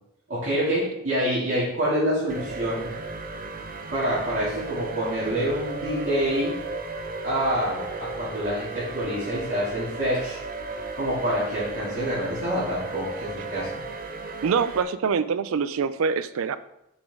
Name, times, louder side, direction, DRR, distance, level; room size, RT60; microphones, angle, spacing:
voice 1, 0.3-2.9 3.9-6.6 7.2-10.4 11.0-13.8, equal, 60° right, -11 dB, 2.6 m, -27 dB
sound 1, 2.3-14.8, right 3 dB, 40° right, 0.6 m, -35 dB
voice 2, 14.4-16.6, right 6 dB, 85° right, 14 dB, 0.4 m, -25 dB
7.2 x 5.0 x 3.6 m, 0.84 s
head